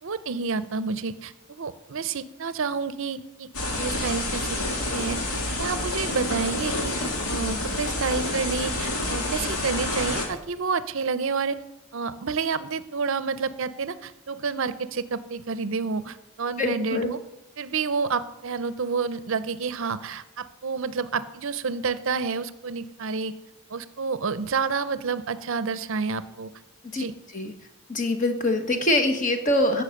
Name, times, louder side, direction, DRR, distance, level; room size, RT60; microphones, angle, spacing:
voice 1, 0.0-3.5 3.8-5.2 5.6-7.0 7.3-11.6 11.9-17.2 17.6-23.3 23.7-26.5 26.9-27.1, right 5 dB, 60° right, 14 dB, 0.5 m, -29 dB
sound 1, 3.5-10.3, left 1 dB, 75° left, 2.3 m, -28 dB
voice 2, 16.6-17.1 26.8-27.0 27.3-27.5 27.9-29.8, left 1 dB, 35° left, 6 dB, 1.2 m, -24 dB
15.0 x 5.6 x 6.4 m, 0.92 s
head